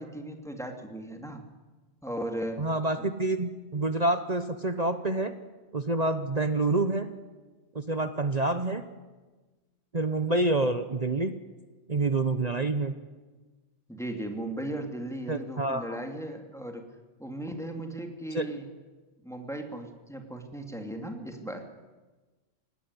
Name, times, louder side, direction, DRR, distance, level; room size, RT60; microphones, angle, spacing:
voice 1, 0.0-1.4 2.0-2.6 3.0-3.1 13.9-16.8 17.2-18.7 19.2-21.7, right 1 dB, ahead, 4 dB, 2.8 m, -37 dB
voice 2, 2.6-5.3 5.7-7.1 7.7-8.8 9.9-11.4 11.9-12.9 15.3-16.0 18.3-18.5, right 2 dB, 35° right, 9 dB, 1.1 m, -27 dB
28.0 x 17.5 x 9.9 m, 1.3 s
omnidirectional pair, 1.3 m